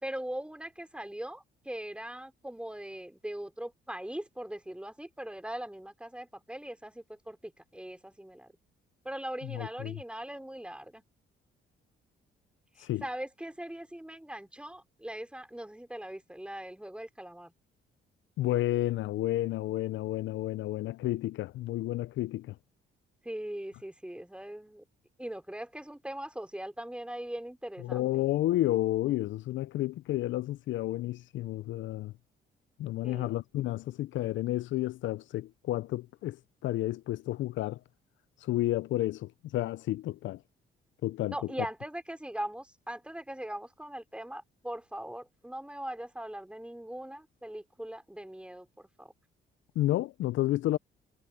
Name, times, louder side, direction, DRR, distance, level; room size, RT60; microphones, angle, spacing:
voice 1, 0.0-8.5 9.0-11.0 12.8-17.5 23.2-24.8 25.2-28.1 33.0-33.3 41.3-49.1, right 1 dB, 5° right, 4.6 m, -40 dB
voice 2, 9.4-10.0 12.8-13.1 18.4-22.6 27.8-32.1 32.8-36.4 36.6-37.8 38.4-40.4 41.0-41.3 49.8-50.8, left 15 dB, 75° left, 0.4 m, -31 dB
cardioid pair, 90°, 20 cm